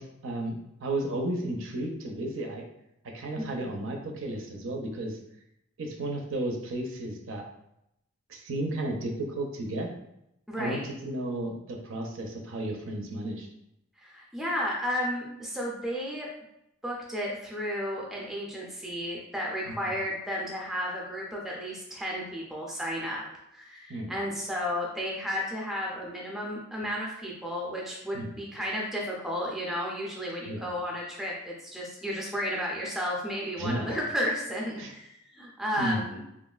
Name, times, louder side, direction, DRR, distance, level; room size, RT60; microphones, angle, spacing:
voice 1, 0.0-2.6 3.1-5.2 5.8-7.4 8.3-9.9 10.6-13.5 19.7-19.8 23.9-24.2 28.1-28.3 30.5-30.7 33.6-34.0 34.8-34.9 35.8-36.1, right 1 dB, 70° right, 2 dB, 0.5 m, -33 dB
voice 2, 3.4-3.7 10.5-10.9 14.0-16.3 16.8-36.2, equal, ahead, -3 dB, 0.4 m, -33 dB
3.0 x 2.4 x 2.3 m, 0.80 s
head